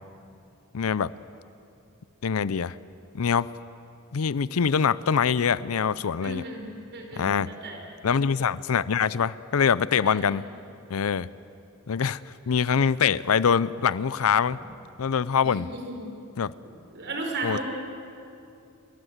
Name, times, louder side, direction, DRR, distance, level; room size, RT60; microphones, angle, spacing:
voice 1, 0.7-1.1 2.2-2.7 3.1-3.5 4.1-6.4 7.2-7.5 8.0-10.4 10.9-11.3 11.9-12.2 12.5-14.6 15.0-15.7 16.4-16.5 17.4-17.6, left 6 dB, 80° left, 18 dB, 0.5 m, -24 dB
voice 2, 6.2-6.7 6.9-7.8 10.0-10.2 15.4-16.1 16.9-17.6, right 2 dB, 55° right, 2 dB, 5.4 m, -35 dB
28.5 x 22.0 x 8.1 m, 2.7 s
head